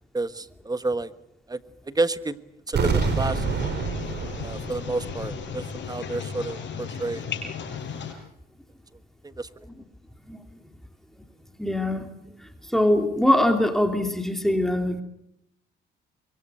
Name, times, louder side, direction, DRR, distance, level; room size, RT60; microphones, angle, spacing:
voice 1, 0.1-1.1 1.5-1.6 1.9-2.4 2.7-3.4 4.4-7.2 9.2-9.5, right 2 dB, 20° right, 13 dB, 1.4 m, -30 dB
sound 1, 2.7-5.6 5.9-6.0, right 5 dB, 55° right, 4.5 m, -27 dB
sound 2, 2.8-8.1, left 6 dB, 65° left, 6.2 m, -35 dB
voice 2, 11.6-12.1 12.6-15.0, left 1 dB, ahead, 5 dB, 2.9 m, -23 dB
23.5 x 23.5 x 7.8 m, 0.78 s
cardioid pair, 90°, 20 cm